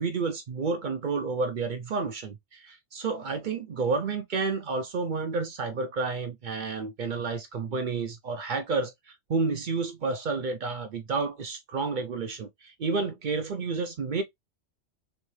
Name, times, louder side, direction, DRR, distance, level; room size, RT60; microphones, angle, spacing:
voice 1, 0.0-14.2, right 4 dB, 55° right, 0.6 m, -30 dB
3.2 x 3.1 x 3.1 m
omnidirectional pair, 1.2 m